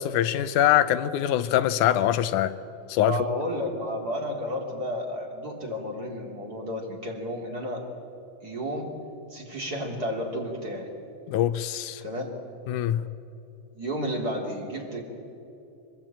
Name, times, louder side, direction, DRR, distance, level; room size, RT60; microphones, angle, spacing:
voice 1, 0.0-2.6 2.9-3.2 11.3-12.0 12.7-13.1, left 11 dB, 80° left, 2.2 m, -23 dB
voice 2, 3.0-7.8 8.4-8.9 9.3-10.9 12.0-12.3 13.7-15.0, equal, 30° right, 3.4 m, -32 dB
25.0 x 21.5 x 8.9 m
omnidirectional pair, 3.5 m